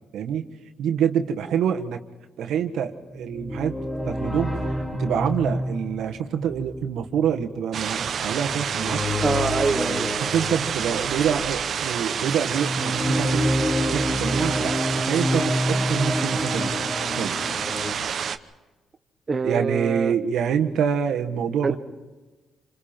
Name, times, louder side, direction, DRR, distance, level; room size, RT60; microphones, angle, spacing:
voice 1, 0.1-0.5 0.8-2.0 2.4-3.8 4.0-9.0 10.2-13.5 13.9-16.7 17.2-17.4 19.4-21.8, right 8 dB, 80° right, 1.5 m, -26 dB
sound 1, 3.1-11.6 12.2-17.9, equal, 25° left, 3.9 m, -28 dB
sound 2, 7.7-18.4, right 7 dB, 55° right, 0.9 m, -28 dB
voice 2, 9.2-10.1 19.3-20.1 21.6-21.8, right 4 dB, 30° right, 1.2 m, -25 dB
28.0 x 26.5 x 4.5 m
cardioid pair, 90°, 0 cm